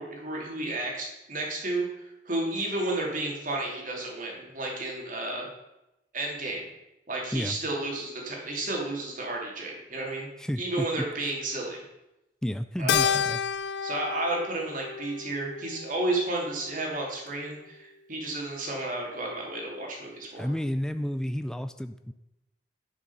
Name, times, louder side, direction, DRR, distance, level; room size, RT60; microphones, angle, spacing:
voice 1, 0.0-5.5 6.1-6.7 7.1-10.3 10.6-11.8 12.8-13.2 13.8-20.5, right 2 dB, 50° right, -1 dB, 2.7 m, -32 dB
voice 2, 10.4-11.3 12.4-13.4 20.4-22.1, equal, 5° left, 9 dB, 0.3 m, -31 dB
Keyboard (musical), 12.9-17.5, left 8 dB, 80° left, 0.3 m, -31 dB
11.5 x 6.0 x 5.5 m, 0.92 s
head